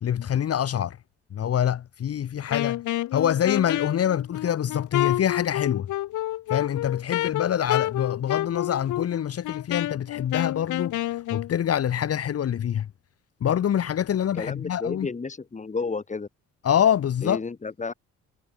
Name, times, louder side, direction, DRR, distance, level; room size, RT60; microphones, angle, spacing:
voice 1, 0.0-1.0 1.3-2.8 3.1-5.9 6.5-12.9 13.4-15.1 16.6-17.4, left 9 dB, 50° left, 1.2 m, -25 dB
Wind instrument woodwind instrument, 2.5-11.5, left 15 dB, 80° left, 1.1 m, -29 dB
voice 2, 14.3-16.3 17.2-17.9, left 4 dB, 25° left, 1.9 m, -31 dB
cardioid pair, 90°, 30 cm